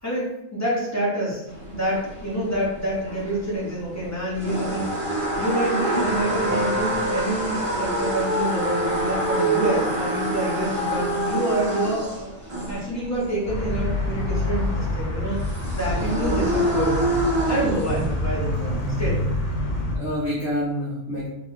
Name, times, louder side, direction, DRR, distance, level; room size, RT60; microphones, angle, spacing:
voice 1, 0.0-5.1 5.4-12.3 12.7-15.4 15.7-17.2 17.5-18.5 19.0-19.2, right 1 dB, 15° left, -7 dB, 1.3 m, -27 dB
sound 1, 1.5-18.3, right 1 dB, 25° right, 1.1 m, -27 dB
sound 2, 13.4-20.0, left 1 dB, 90° left, 1.4 m, -27 dB
voice 2, 18.0-19.0 19.7-21.3, equal, 55° left, -7 dB, 1.2 m, -29 dB
3.7 x 3.0 x 4.0 m, 0.90 s
omnidirectional pair, 1.4 m